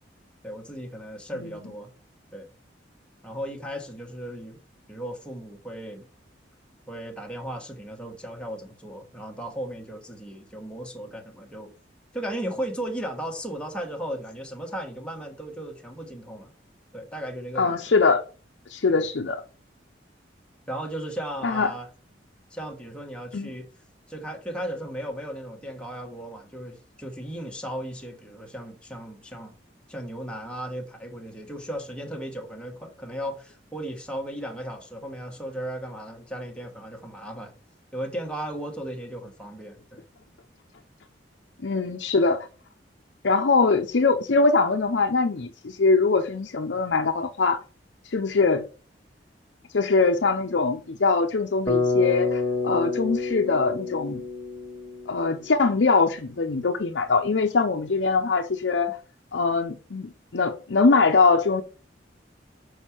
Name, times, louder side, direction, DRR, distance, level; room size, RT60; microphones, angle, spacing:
voice 1, 0.4-1.9 2.3-2.5 3.2-4.6 4.9-6.0 6.9-11.7 12.1-16.5 16.9-17.8 18.9-19.0 20.7-21.9 22.5-23.7 24.1-29.5 29.9-37.5 37.9-40.0, right 1 dB, 5° left, 1.3 m, -36 dB
voice 2, 17.6-18.2 18.7-19.4 21.4-21.7 23.3-23.5 41.6-42.5 43.2-47.6 48.0-48.7 49.7-54.2 55.1-59.0 59.3-61.6, left 4 dB, 65° left, 0.6 m, -22 dB
Bass guitar, 51.7-55.8, left 4 dB, 25° left, 1.2 m, -28 dB
6.4 x 4.8 x 4.4 m
head